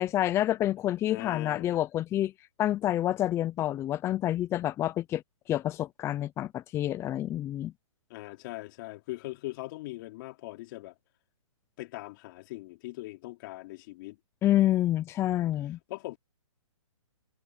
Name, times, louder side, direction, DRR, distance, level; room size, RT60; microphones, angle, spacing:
voice 1, 0.0-2.3 2.6-5.2 5.5-7.7 14.4-15.8, left 13 dB, 15° left, 0.7 m, -28 dB
voice 2, 1.1-1.8 8.1-10.9 11.8-14.2 15.9-16.2, left 19 dB, 40° left, 4.3 m, -40 dB
hypercardioid pair, 145°, 17 cm